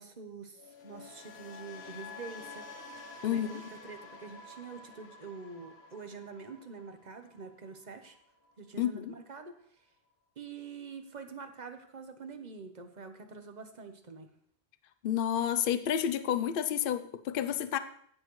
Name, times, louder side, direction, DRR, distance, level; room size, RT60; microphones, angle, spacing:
voice 1, 0.0-2.7 3.0-8.2 8.6-9.9 10.4-14.3, right 5 dB, 45° right, 7 dB, 1.1 m, -46 dB
sound 1, 0.6-8.7 8.9-9.3, left 3 dB, 85° left, 1.3 m, -50 dB
voice 2, 3.2-3.5 8.8-9.1 15.0-17.8, left 10 dB, 60° left, 12 dB, 0.8 m, -30 dB
16.0 x 7.3 x 3.1 m, 0.64 s
omnidirectional pair, 1.1 m